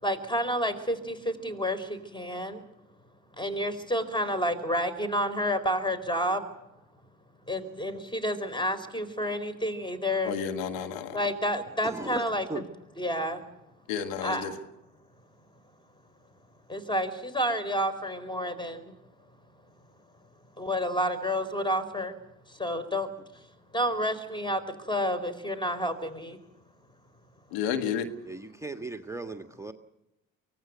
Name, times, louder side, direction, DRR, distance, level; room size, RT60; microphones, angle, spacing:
voice 1, 0.0-2.6 3.4-6.4 7.5-10.3 11.1-12.4 13.0-13.5 14.2-14.5 16.7-18.9 20.6-22.1 22.5-23.1 23.7-26.4, equal, 10° left, 13 dB, 4.3 m, -30 dB
voice 2, 10.2-11.2 13.9-14.5 27.5-28.1, left 8 dB, 85° left, 8 dB, 1.7 m, -31 dB
voice 3, 11.8-12.6 28.3-29.7, right 2 dB, 5° right, 6 dB, 1.5 m, -37 dB
24.0 x 17.5 x 8.0 m, 0.89 s
hypercardioid pair, 60°, 39 cm